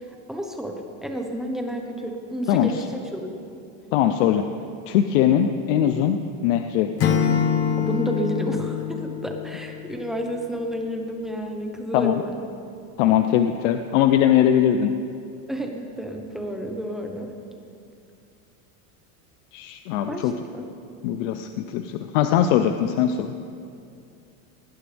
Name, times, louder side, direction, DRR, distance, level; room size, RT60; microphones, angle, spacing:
voice 1, 0.0-3.4 7.8-12.4 15.5-17.3 20.1-20.7, equal, ahead, 2 dB, 1.0 m, -31 dB
voice 2, 2.5-2.8 3.9-4.5 4.9-6.9 11.9-12.1 13.0-14.9 19.5-20.3 21.0-23.3, left 10 dB, 55° left, 7 dB, 0.7 m, -21 dB
Acoustic guitar / Strum, 7.0-10.1, left 8 dB, 30° left, 1.0 m, -24 dB
19.5 x 18.5 x 3.5 m, 2.5 s
supercardioid pair, 170°, 43 cm